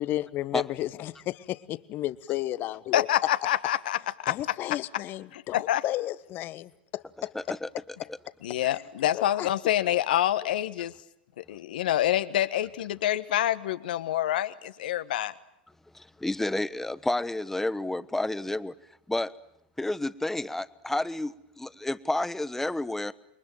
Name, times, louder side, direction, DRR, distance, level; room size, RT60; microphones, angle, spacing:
voice 1, 0.0-3.1 4.3-7.6 8.0-8.1 8.7-8.8 9.1-9.7, left 14 dB, 40° left, 16 dB, 1.2 m, -33 dB
voice 2, 2.9-4.0 4.2-4.3 5.3-5.8 8.4-10.9 11.4-15.3, left 12 dB, 70° left, 12 dB, 1.4 m, -27 dB
voice 3, 7.3-8.0 8.6-8.7 15.9-18.7 19.1-19.3 19.8-23.1, left 2 dB, 5° left, 15 dB, 1.1 m, -30 dB
28.0 x 23.0 x 9.1 m, 0.77 s
hypercardioid pair, 90°, 5 cm